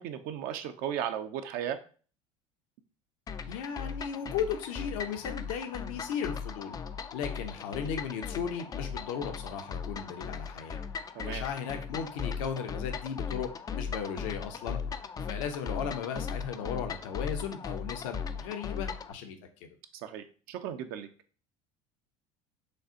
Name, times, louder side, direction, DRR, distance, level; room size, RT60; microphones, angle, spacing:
voice 1, 0.0-1.8 11.1-11.4 15.2-15.3 19.9-21.1, right 9 dB, 55° right, 8 dB, 0.5 m, -36 dB
sound 1, 3.3-19.1, left 6 dB, 20° left, 0.3 m, -38 dB
voice 2, 3.5-6.8 7.1-10.8 11.2-14.8 15.2-19.7, left 7 dB, 65° left, 6 dB, 0.7 m, -36 dB
6.4 x 2.4 x 2.7 m, 0.39 s
hypercardioid pair, 70°, 18 cm